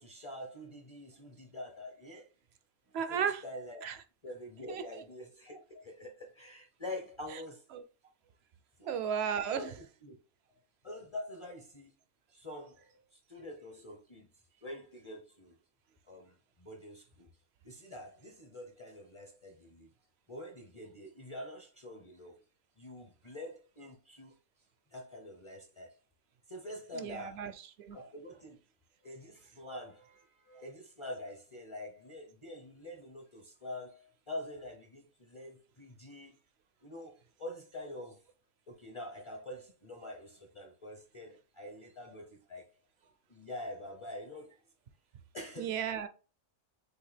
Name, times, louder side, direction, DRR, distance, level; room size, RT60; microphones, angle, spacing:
voice 1, 0.0-2.3 3.1-3.9 4.2-7.7 8.8-9.0 9.4-10.2 10.8-11.9 12.3-14.3 14.6-15.6 16.1-17.3 17.6-19.9 20.3-22.4 22.8-24.3 24.9-25.9 26.5-27.5 27.9-28.6 29.0-36.3 36.8-38.2 38.7-42.7 43.0-44.6 45.3-45.8, left 1 dB, 30° left, 0.6 m, -46 dB
voice 2, 2.9-3.4 3.8-4.0 4.7-4.8 7.7-7.8 8.9-9.7 26.9-27.5 27.8-28.0 45.6-46.1, right 7 dB, 65° right, 0.8 m, -34 dB
6.4 x 2.5 x 3.3 m
omnidirectional pair, 1.3 m